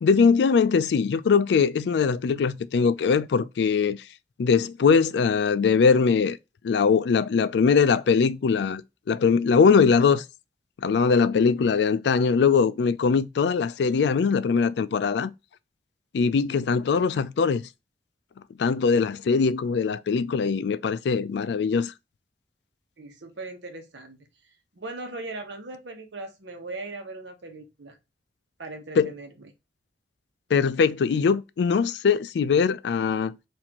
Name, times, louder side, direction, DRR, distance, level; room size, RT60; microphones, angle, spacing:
voice 1, 0.0-4.0 4.4-6.4 6.6-8.8 9.1-10.2 10.8-15.3 16.1-17.6 18.6-21.9 29.0-29.1 30.5-33.3, left 5 dB, 70° left, 0.3 m, -21 dB
voice 2, 23.0-24.2 24.7-28.0 28.6-29.5, right 2 dB, 85° right, 1.0 m, -39 dB
4.3 x 2.6 x 2.9 m
head